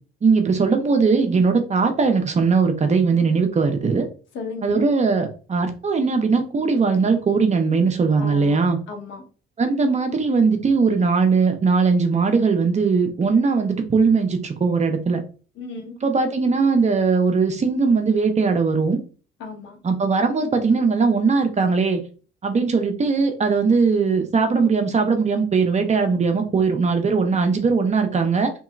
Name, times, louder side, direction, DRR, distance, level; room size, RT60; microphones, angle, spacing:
voice 1, 0.2-4.1 4.6-8.8 9.6-15.2 16.0-19.0 19.8-22.0 22.4-28.5, right 4 dB, 35° right, 5 dB, 0.7 m, -19 dB
voice 2, 4.3-4.8 8.2-8.6 8.9-9.2 15.6-16.0 19.4-19.8, left 4 dB, 80° left, 2 dB, 1.0 m, -34 dB
2.9 x 2.9 x 2.4 m, 0.36 s
cardioid pair, 90°, 20 cm